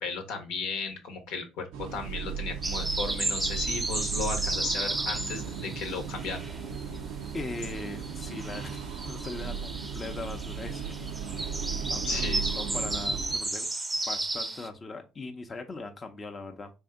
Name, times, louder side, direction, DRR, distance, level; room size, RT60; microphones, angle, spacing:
voice 1, 0.0-6.5 12.1-12.5, left 4 dB, 80° left, 4 dB, 0.9 m, -35 dB
sound 1, 1.7-13.4, right 7 dB, 85° right, 0.4 m, -36 dB
sound 2, 2.6-7.0 7.2-14.7, right 2 dB, 20° right, 0.6 m, -34 dB
voice 2, 7.3-11.2 11.9-13.7 14.1-16.7, left 3 dB, 30° left, 5 dB, 0.6 m, -40 dB
3.4 x 2.7 x 3.6 m, 0.29 s
supercardioid pair, 80°, 0 cm